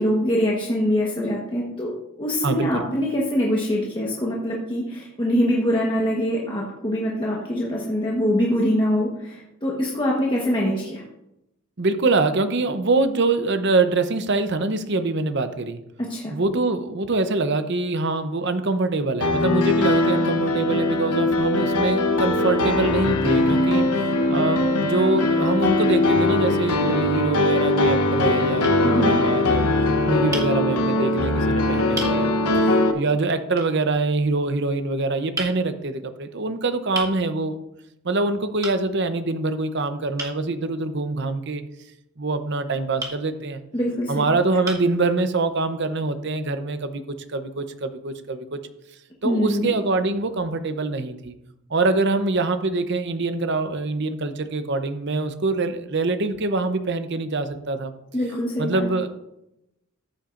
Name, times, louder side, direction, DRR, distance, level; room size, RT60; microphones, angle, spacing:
voice 1, 0.0-1.9 2.2-11.0 16.0-16.3 28.8-29.2 43.7-44.3 49.2-49.7 58.1-58.9, equal, 20° left, -4 dB, 1.2 m, -24 dB
voice 2, 2.4-2.8 11.8-15.8 16.3-23.9 24.3-29.7 30.0-32.3 32.6-37.6 38.0-41.6 42.2-43.6 44.1-47.0 47.3-48.6 49.2-51.3 51.7-57.9 58.6-59.1, right 3 dB, 50° right, 9 dB, 0.7 m, -24 dB
Piano, 19.2-32.9, left 2 dB, 90° left, 0.9 m, -21 dB
sound 1, 28.6-28.8 30.3-30.5 31.3-31.4 31.9-32.2 33.6-33.7 35.3-35.6 36.9-37.2 38.6-38.8 40.2-40.4 43.0-43.2 44.0-44.1 44.6-44.9, right 2 dB, 15° right, 1.3 m, -32 dB
14.0 x 8.5 x 2.6 m, 0.86 s
head